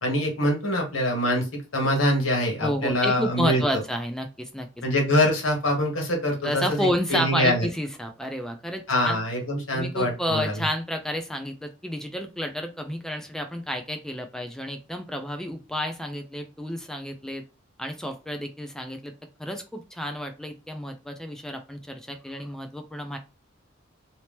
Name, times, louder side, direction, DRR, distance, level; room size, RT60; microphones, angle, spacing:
voice 1, 0.0-1.5 1.7-3.8 4.8-7.7 8.9-10.6, left 1 dB, 85° left, 2 dB, 1.3 m, -24 dB
voice 2, 2.6-4.7 6.4-9.2 9.7-17.4 17.8-19.1 19.4-23.2, equal, 5° left, 6 dB, 0.4 m, -30 dB
2.9 x 2.8 x 3.3 m, 0.30 s
head